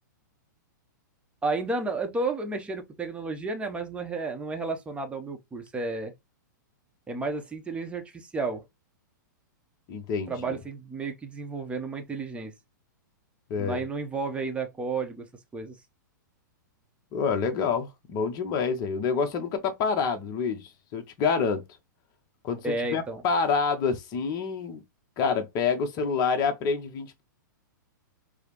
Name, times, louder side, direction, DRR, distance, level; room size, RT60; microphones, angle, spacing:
voice 1, 1.4-6.1 7.1-8.7 10.3-12.5 13.6-15.3 15.5-15.7 22.6-23.2, right 3 dB, 10° right, 0.7 m, -32 dB
voice 2, 9.9-10.3 13.5-13.8 17.1-21.6 22.4-24.8 25.2-27.2, left 5 dB, 35° left, 0.7 m, -27 dB
4.8 x 2.0 x 2.9 m
hypercardioid pair, 125°, 10 cm